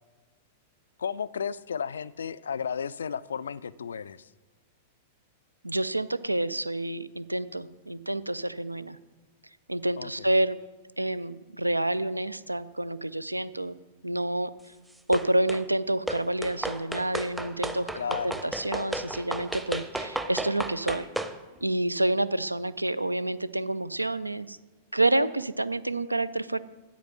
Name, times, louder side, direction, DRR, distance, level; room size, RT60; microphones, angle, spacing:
voice 1, 1.0-4.3 10.0-10.3 17.9-18.4, left 7 dB, 70° left, 20 dB, 0.3 m, -33 dB
voice 2, 5.6-9.0 9.7-10.6 11.0-13.8 14.0-14.5 15.1-17.9 18.2-21.1 21.6-24.6 24.9-26.6, right 1 dB, 85° right, 16 dB, 0.4 m, -28 dB
sound 1, 15.1-15.7 16.1-21.4, right 1 dB, 5° right, 0.6 m, -33 dB
8.9 x 8.2 x 6.0 m, 1.2 s
figure-of-eight pair, 95°, 0 cm